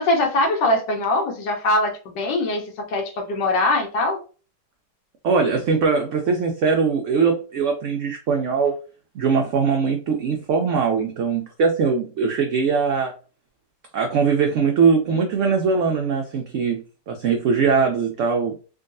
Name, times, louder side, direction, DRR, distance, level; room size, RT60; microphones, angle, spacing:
voice 1, 0.0-4.2, left 2 dB, 85° left, 3 dB, 1.5 m, -22 dB
voice 2, 5.2-8.7 9.1-13.1 13.9-18.5, right 5 dB, 85° right, 3 dB, 0.6 m, -21 dB
3.6 x 2.3 x 2.5 m, 0.36 s
omnidirectional pair, 1.9 m